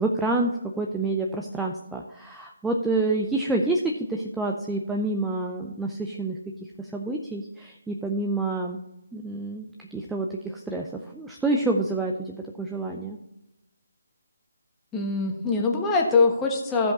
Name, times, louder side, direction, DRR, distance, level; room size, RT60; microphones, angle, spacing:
voice 1, 0.0-6.4 6.8-8.8 9.1-13.2, right 2 dB, 5° right, 1 dB, 0.5 m, -28 dB
voice 2, 14.9-16.9, left 3 dB, 10° left, 0 dB, 1.3 m, -23 dB
14.5 x 5.2 x 4.2 m, 0.92 s
figure-of-eight pair, 150°, 0 cm